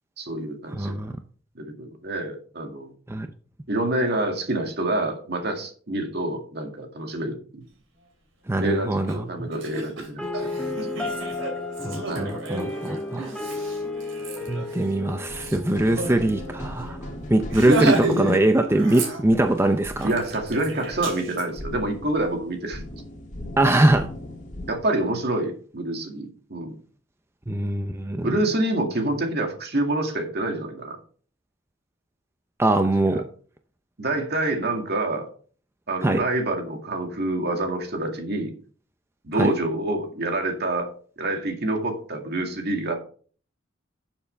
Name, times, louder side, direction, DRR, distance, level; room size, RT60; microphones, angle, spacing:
voice 1, 0.2-1.0 1.6-2.9 3.7-7.6 8.6-10.2 10.9-11.1 12.1-12.3 15.9-16.1 17.6-18.2 20.0-22.8 24.7-26.8 28.2-31.0 34.0-35.3 35.9-38.5 39.2-40.9 41.2-42.9, right 1 dB, 55° right, 3 dB, 2.1 m, -27 dB
voice 2, 0.7-1.1 3.1-3.3 8.5-9.5 11.8-13.3 14.5-17.0 17.3-20.1 23.6-24.1 27.5-28.3 32.6-33.3 36.0-36.2 39.4-39.5, right 1 dB, 15° right, 6 dB, 0.5 m, -22 dB
Laughter, 9.1-9.2 9.5-16.2 16.5-16.6 16.9-17.1 17.5-18.4 18.7-19.5 20.0-21.4, right 2 dB, 70° right, 3.2 m, -31 dB
sound 1, 10.2-18.2, left 2 dB, 5° left, 1.4 m, -34 dB
sound 2, 15.3-24.8, left 1 dB, 40° left, 1.9 m, -39 dB
12.0 x 7.2 x 3.4 m, 0.43 s
head